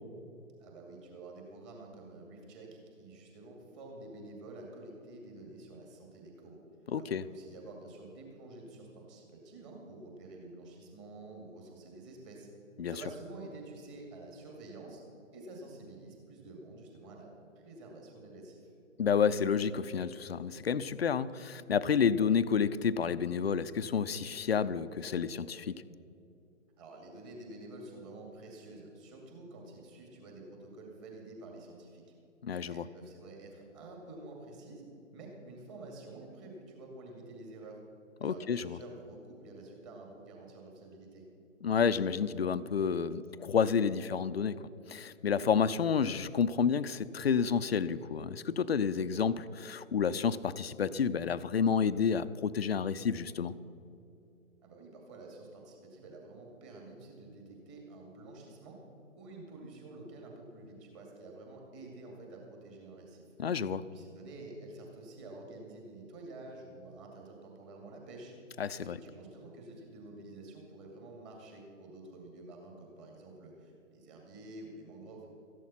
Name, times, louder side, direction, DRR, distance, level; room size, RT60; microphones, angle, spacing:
voice 1, 0.6-6.6 6.9-12.5 12.9-15.0 15.3-17.3 17.6-18.7 26.8-32.0 32.7-34.8 35.1-37.8 38.2-41.2 54.6-58.8 59.2-63.2 63.9-68.3 68.8-75.3, right 2 dB, 25° right, 0 dB, 2.4 m, -49 dB
voice 2, 6.9-7.2 12.8-12.9 19.0-25.8 32.4-32.8 38.2-38.8 41.6-53.5 63.4-63.8 68.6-69.0, left 6 dB, 50° left, 14 dB, 0.5 m, -30 dB
14.0 x 11.0 x 5.7 m, 2.7 s
figure-of-eight pair, 135°, 39 cm